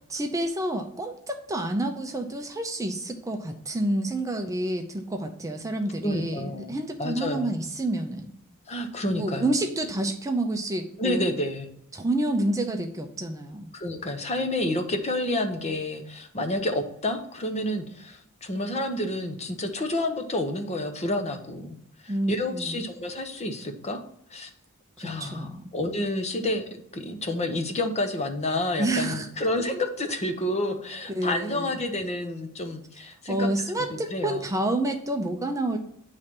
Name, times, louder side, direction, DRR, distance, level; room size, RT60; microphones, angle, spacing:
voice 1, 0.1-8.4 9.1-11.3 11.9-13.7 22.1-22.8 25.0-25.7 28.8-29.3 31.1-31.8 33.3-35.8, right 1 dB, 15° right, 4 dB, 0.6 m, -29 dB
voice 2, 6.0-7.5 8.7-9.5 11.0-11.7 13.7-21.8 22.0-24.0 24.3-24.5 25.0-26.6 26.9-33.5 33.8-34.5, left 1 dB, 30° left, 6 dB, 0.8 m, -29 dB
8.6 x 3.3 x 5.9 m, 0.70 s
head